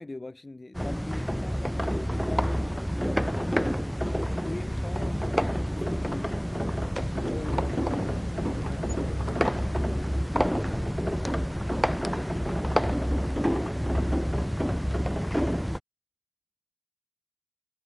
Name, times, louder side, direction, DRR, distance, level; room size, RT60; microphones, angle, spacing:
voice 1, 0.0-2.8 3.2-3.7 4.0-4.1 4.4-6.3 7.3-7.7 8.6-8.8, left 2 dB, 25° left, 2.7 m, -41 dB
sound 1, 0.7-15.8, equal, ahead, 0.8 m, -28 dB
voice 2, 8.1-11.6, left 4 dB, 45° left, 5.9 m, -51 dB
supercardioid pair, 45°, 0 cm